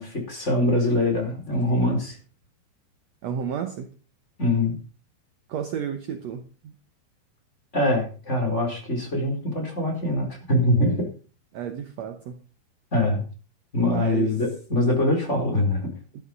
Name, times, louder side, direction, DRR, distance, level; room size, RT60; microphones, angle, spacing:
voice 1, 0.0-2.2 4.4-4.7 7.7-11.1 12.9-13.2 13.7-15.9, left 1 dB, 15° left, 4.4 m, -23 dB
voice 2, 3.2-3.9 5.5-6.5 11.5-12.4 13.8-14.3, right 8 dB, 75° right, 1.5 m, -31 dB
13.0 x 11.5 x 5.3 m
omnidirectional pair, 4.5 m